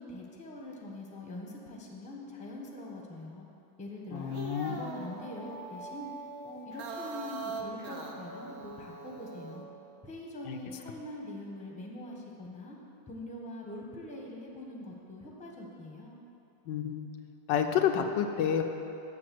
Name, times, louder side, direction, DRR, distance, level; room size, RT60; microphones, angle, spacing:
voice 1, 0.0-3.4 3.8-4.3 4.6-6.1 6.4-9.7 10.0-12.8 13.1-16.2, left 1 dB, 5° left, -2 dB, 0.9 m, -43 dB
voice 2, 4.1-4.8 10.5-10.6 16.7-17.1 17.5-18.6, left 8 dB, 80° left, 5 dB, 1.3 m, -29 dB
sound 1, 4.2-9.6, right 4 dB, 60° right, 1.2 m, -42 dB
7.8 x 6.8 x 7.6 m, 2.9 s
omnidirectional pair, 2.0 m